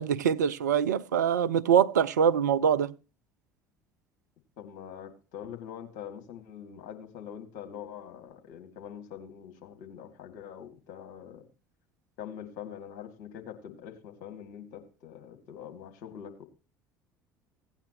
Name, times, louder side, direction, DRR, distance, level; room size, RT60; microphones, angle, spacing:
voice 1, 0.0-2.9, right 8 dB, 80° right, 0.5 m, -24 dB
voice 2, 4.6-11.5 12.2-16.4, left 9 dB, 65° left, 2.1 m, -44 dB
16.5 x 8.9 x 2.9 m
figure-of-eight pair, 60°, 9 cm